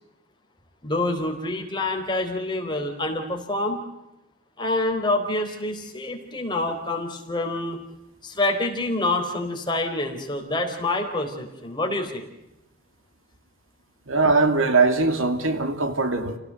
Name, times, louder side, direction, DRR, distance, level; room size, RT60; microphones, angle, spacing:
voice 1, 0.8-3.8 4.6-7.8 8.2-12.3, left 2 dB, 20° left, 4.1 m, -27 dB
voice 2, 14.1-16.4, right 3 dB, 70° right, 2.7 m, -21 dB
29.5 x 18.0 x 7.7 m
head